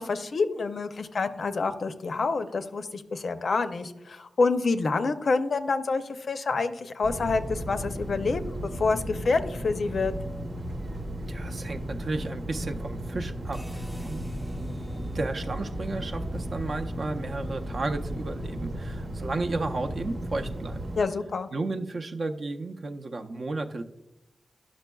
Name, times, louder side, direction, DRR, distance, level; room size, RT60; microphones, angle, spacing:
voice 1, 0.0-10.1 21.0-21.5, left 4 dB, 65° left, 9 dB, 0.5 m, -27 dB
sound 1, 7.0-21.0, right 1 dB, 80° right, 1.0 m, -35 dB
voice 2, 11.3-13.6 14.0-14.2 14.6-14.7 15.1-20.8 21.5-23.8, right 3 dB, 55° right, 5 dB, 0.5 m, -33 dB
sound 2, 13.5-19.7, equal, ahead, 0.4 m, -44 dB
10.5 x 6.1 x 2.3 m, 0.95 s
wide cardioid pair, 90°, 0 cm